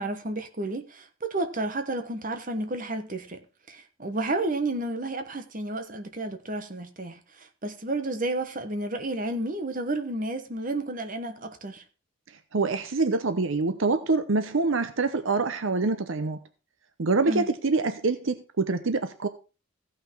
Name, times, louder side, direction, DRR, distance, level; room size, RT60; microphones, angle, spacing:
voice 1, 0.0-3.4 3.7-11.8 17.2-17.5, right 2 dB, 40° right, 1.2 m, -31 dB
voice 2, 12.5-16.4 17.0-19.3, right 3 dB, 70° right, 0.8 m, -25 dB
15.5 x 5.8 x 4.5 m
head